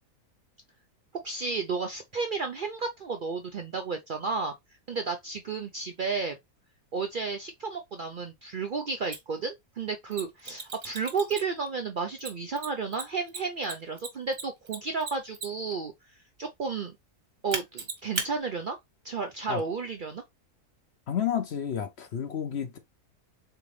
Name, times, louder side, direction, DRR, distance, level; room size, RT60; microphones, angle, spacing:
voice 1, 1.1-4.5 4.9-6.4 6.9-15.9 16.4-16.9 17.4-18.8 19.0-20.2, right 4 dB, 70° right, 0.4 m, -32 dB
Mechanisms, 9.1-9.2 10.1-11.7 12.2-15.7 17.5-18.3, right 4 dB, 55° right, 1.5 m, -35 dB
voice 2, 21.1-22.8, left 8 dB, 60° left, 0.8 m, -30 dB
3.7 x 3.4 x 3.1 m
omnidirectional pair, 1.6 m